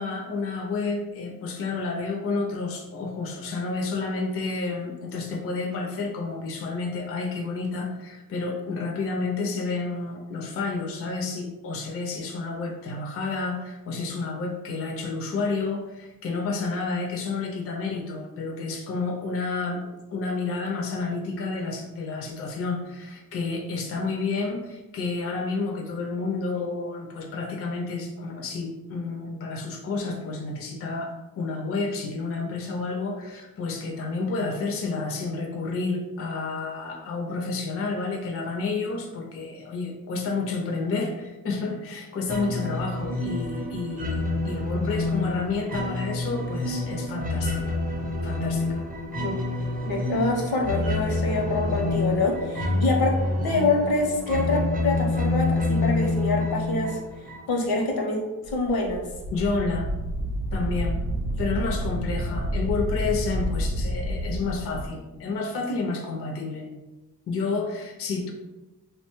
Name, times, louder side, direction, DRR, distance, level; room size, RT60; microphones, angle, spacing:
voice 1, 0.0-47.8 48.2-48.9 59.3-59.9 60.5-61.0 61.4-66.7 67.3-68.3, left 3 dB, 40° left, 1 dB, 0.4 m, -30 dB
sound 1, 42.3-57.8, left 2 dB, 25° right, 0.5 m, -27 dB
voice 2, 49.8-53.2 53.4-57.0 57.5-59.0, left 3 dB, 70° left, 0 dB, 0.7 m, -26 dB
Wind, 58.4-64.9, equal, 80° right, 0.5 m, -29 dB
2.7 x 2.1 x 3.0 m, 1.1 s
wide cardioid pair, 110°, 37 cm